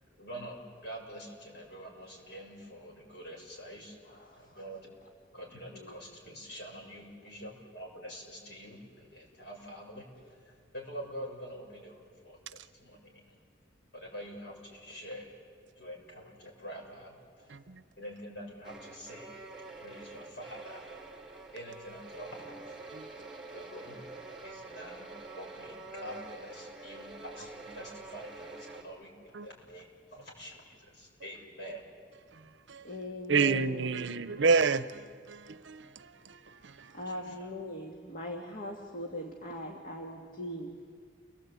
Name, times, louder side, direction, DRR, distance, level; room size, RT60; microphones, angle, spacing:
voice 1, 0.1-0.6 0.8-4.0 4.5-4.9 5.3-10.1 10.4-13.4 13.9-15.4 15.8-17.5 18.0-19.5 19.8-20.9 21.5-22.8 23.5-24.1 24.4-29.9 30.1-31.8 37.0-37.5, equal, 60° left, -1 dB, 6.7 m, -46 dB
voice 2, 4.1-4.6 5.7-6.0 6.3-6.4 32.8-34.0 36.9-40.7, left 1 dB, 45° left, 1 dB, 1.9 m, -41 dB
sound 1, 18.6-28.8, right 3 dB, ahead, 3.3 m, -46 dB
voice 3, 33.3-35.8, right 5 dB, 70° right, 14 dB, 0.7 m, -28 dB
29.5 x 20.5 x 8.4 m, 2.1 s
head